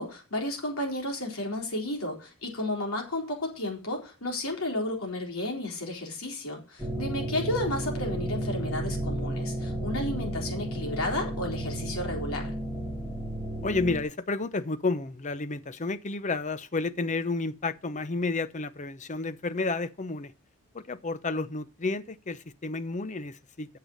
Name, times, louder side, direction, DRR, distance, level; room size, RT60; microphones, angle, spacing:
voice 1, 0.0-12.5, left 1 dB, 70° left, 3.9 m, -32 dB
sound 1, 6.8-14.0, right 1 dB, 10° left, 2.4 m, -33 dB
voice 2, 13.6-20.3 20.7-23.7, left 3 dB, 35° left, 0.7 m, -31 dB
9.2 x 6.9 x 6.3 m
head